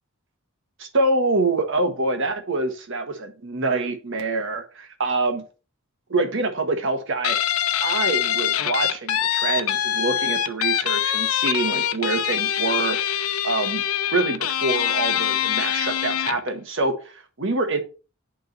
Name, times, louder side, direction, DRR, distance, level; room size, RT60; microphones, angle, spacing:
voice 1, 0.8-5.4 6.1-7.4 7.8-13.0 13.4-13.8 14.1-17.8, right 2 dB, 60° right, 1.5 m, -25 dB
Guitar, 7.2-16.5, left 10 dB, 90° left, 0.7 m, -24 dB
10.5 x 3.8 x 4.1 m
head